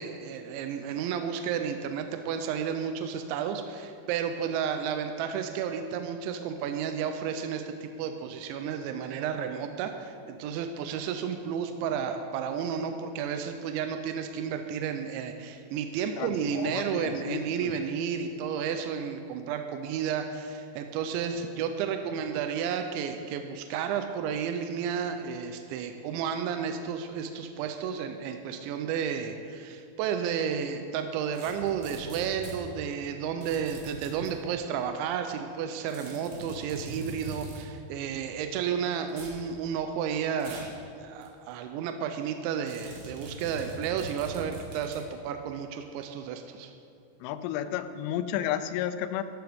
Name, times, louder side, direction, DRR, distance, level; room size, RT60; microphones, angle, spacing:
voice 1, 0.0-46.7, right 7 dB, 80° right, 6 dB, 2.7 m, -32 dB
voice 2, 16.2-17.7 47.2-49.2, left 10 dB, 90° left, 11 dB, 3.2 m, -32 dB
sound 1, 31.3-32.6 33.4-34.3 35.9-37.6 39.1-39.4 40.4-40.8 41.2-41.3 42.7-45.1, right 2 dB, 60° right, 3.1 m, -42 dB
14.0 x 12.5 x 3.5 m, 2.5 s
omnidirectional pair, 5.7 m